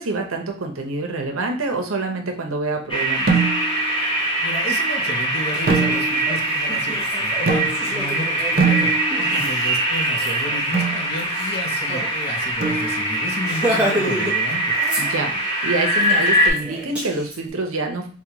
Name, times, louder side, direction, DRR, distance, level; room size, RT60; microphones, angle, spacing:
voice 1, 0.0-3.3 9.2-9.5 15.0-15.3 15.6-18.1, right 3 dB, 80° right, 3 dB, 0.7 m, -26 dB
sound 1, 2.9-16.5, right 1 dB, 25° left, 1.0 m, -23 dB
sound 2, 3.3-3.9 5.7-6.4 7.5-8.1 8.6-9.4 10.7-11.1 12.6-13.2, right 4 dB, 45° right, 0.5 m, -22 dB
voice 2, 3.9-8.9 9.3-14.7, left 1 dB, 50° left, 2 dB, 0.7 m, -32 dB
Laughter, 5.0-5.1 5.4-12.1 12.4-12.5 12.8-13.0 13.4-14.4 14.7-15.5 15.9-17.4, right 1 dB, 5° right, 0.8 m, -30 dB
4.8 x 2.2 x 2.9 m, 0.41 s
head